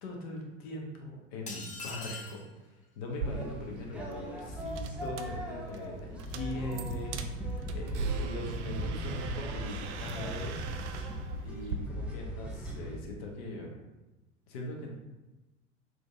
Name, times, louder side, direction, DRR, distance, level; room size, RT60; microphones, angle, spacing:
voice 1, 0.0-2.4 2.9-10.6 11.4-13.7 14.5-14.9, left 1 dB, 55° left, 0 dB, 1.0 m, -41 dB
sound 1, 1.5-2.5, left 3 dB, 20° left, 0.8 m, -41 dB
sound 2, 3.1-11.8, right 5 dB, 65° right, 0.5 m, -40 dB
sound 3, 3.2-13.0, right 1 dB, 5° right, 0.3 m, -39 dB
6.1 x 2.6 x 2.5 m, 1.1 s
figure-of-eight pair, 75°, 37 cm